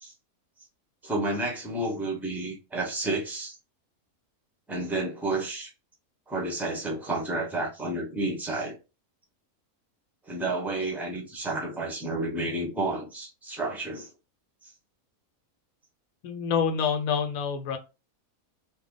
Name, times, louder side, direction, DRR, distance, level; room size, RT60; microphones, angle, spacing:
voice 1, 1.0-3.6 4.7-5.7 6.3-8.8 10.3-14.1, right 2 dB, ahead, 0.6 m, -31 dB
voice 2, 16.2-17.8, left 6 dB, 75° left, 1.0 m, -27 dB
3.0 x 2.2 x 3.6 m
omnidirectional pair, 1.5 m